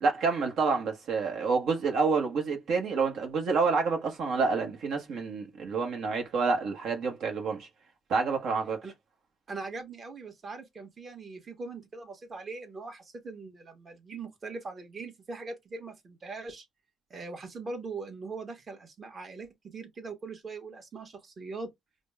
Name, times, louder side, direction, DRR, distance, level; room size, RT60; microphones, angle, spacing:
voice 1, 0.0-7.7 8.1-8.8, right 4 dB, 75° right, 1.0 m, -28 dB
voice 2, 9.5-16.6 17.1-21.7, right 3 dB, 40° right, 1.2 m, -41 dB
5.0 x 2.1 x 2.3 m
cardioid pair, 90°, 0 cm